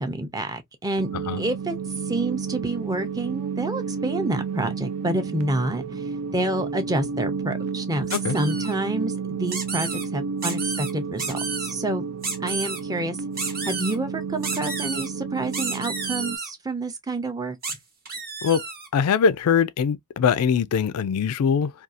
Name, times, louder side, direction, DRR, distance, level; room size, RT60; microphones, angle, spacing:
voice 1, 0.0-1.1 1.4-1.8 2.1-6.0 6.3-12.0 12.4-17.6, right 2 dB, 15° right, 0.5 m, -28 dB
sound 1, 1.0-16.4, right 5 dB, 70° right, 0.5 m, -31 dB
sound 2, 8.1-8.7 9.5-10.0 10.4-10.9 11.2-11.7 12.2-12.8 13.4-14.0 14.4-15.1 15.5-16.5 17.6-17.7 18.1-18.9, right 4 dB, 45° right, 0.9 m, -31 dB
voice 2, 18.9-21.7, left 7 dB, 80° left, 0.3 m, -22 dB
2.6 x 2.3 x 2.4 m
head